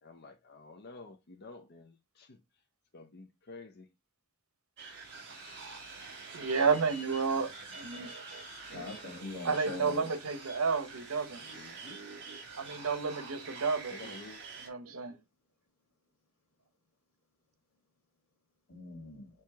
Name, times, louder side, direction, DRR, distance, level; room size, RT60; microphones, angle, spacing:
voice 1, 0.0-2.4 2.9-3.9 11.4-12.1 13.9-14.4, left 3 dB, 50° left, 0.6 m, -50 dB
sound 1, 4.8-14.7, right 4 dB, 55° right, 1.5 m, -46 dB
voice 2, 6.3-8.1 8.7-8.8 9.4-11.4 12.6-13.9 14.7-15.2, right 5 dB, 75° right, 0.9 m, -31 dB
voice 3, 8.7-10.1 11.6-11.7 18.7-19.3, left 2 dB, 75° left, 2.0 m, -42 dB
4.6 x 2.9 x 3.4 m
head